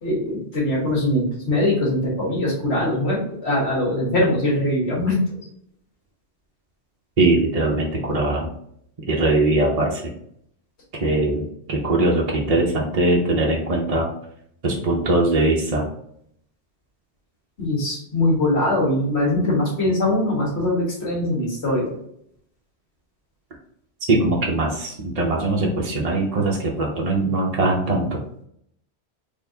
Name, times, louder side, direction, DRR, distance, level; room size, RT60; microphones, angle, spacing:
voice 1, 0.0-5.4 17.6-22.0, left 1 dB, 65° left, -4 dB, 1.8 m, -22 dB
voice 2, 7.2-8.5 9.1-10.0 11.0-14.1 14.6-15.8 24.1-28.2, right 2 dB, 40° right, -2 dB, 0.7 m, -21 dB
4.2 x 2.9 x 2.7 m, 0.70 s
omnidirectional pair, 1.2 m